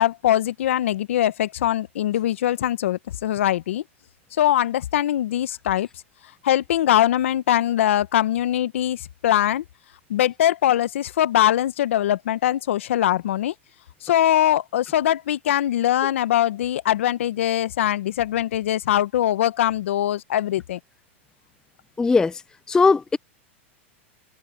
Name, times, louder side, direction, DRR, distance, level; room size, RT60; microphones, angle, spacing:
voice 1, 0.0-3.8 4.3-5.9 6.4-9.6 10.1-13.5 14.0-20.8, left 12 dB, 75° left, 1.3 m, -22 dB
voice 2, 22.0-22.4 22.7-23.2, left 4 dB, 10° left, 0.3 m, -18 dB
hypercardioid pair, 115°, 7 cm